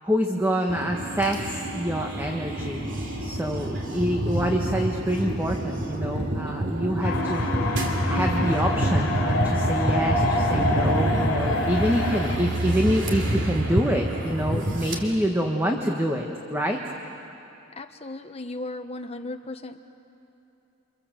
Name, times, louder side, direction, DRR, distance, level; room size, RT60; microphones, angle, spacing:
voice 1, 0.0-2.9 3.2-7.5 8.1-16.8, equal, 10° right, 1 dB, 1.4 m, -26 dB
sound 1, 0.7-15.0, right 1 dB, 60° right, 3.0 m, -27 dB
sound 2, 7.0-12.4, left 2 dB, 75° left, 3.4 m, -27 dB
voice 2, 17.8-19.8, left 2 dB, 30° left, 6 dB, 1.2 m, -36 dB
30.0 x 26.5 x 7.6 m, 2.9 s
head